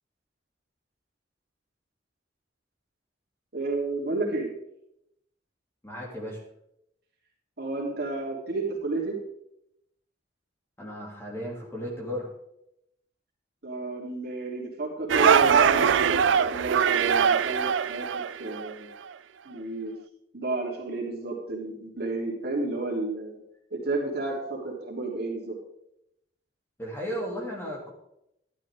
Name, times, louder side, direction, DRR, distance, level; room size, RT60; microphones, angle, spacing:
voice 1, 3.5-4.5 7.6-9.2 13.6-18.9 19.5-19.9 20.3-23.4 23.7-25.6, right 2 dB, 55° right, -2 dB, 3.5 m, -31 dB
voice 2, 5.8-6.4 10.8-12.3 26.8-27.9, equal, 15° left, -2 dB, 2.9 m, -35 dB
sound 1, 15.1-18.7, right 7 dB, 80° right, 0.4 m, -22 dB
12.5 x 12.0 x 3.7 m, 0.79 s
head